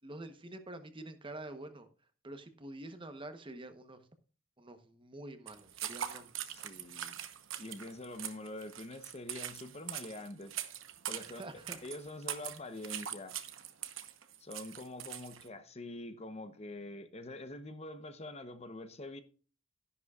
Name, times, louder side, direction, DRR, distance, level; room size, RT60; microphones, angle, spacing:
voice 1, 0.0-1.9 2.2-4.0 4.6-6.3 11.2-11.8, right 1 dB, 25° right, 1.0 m, -47 dB
sound 1, 5.5-15.5, right 10 dB, 75° right, 1.0 m, -42 dB
voice 2, 6.5-7.2 7.6-10.6 11.1-13.4 14.4-19.2, left 2 dB, 30° left, 0.8 m, -45 dB
12.0 x 11.0 x 2.4 m
head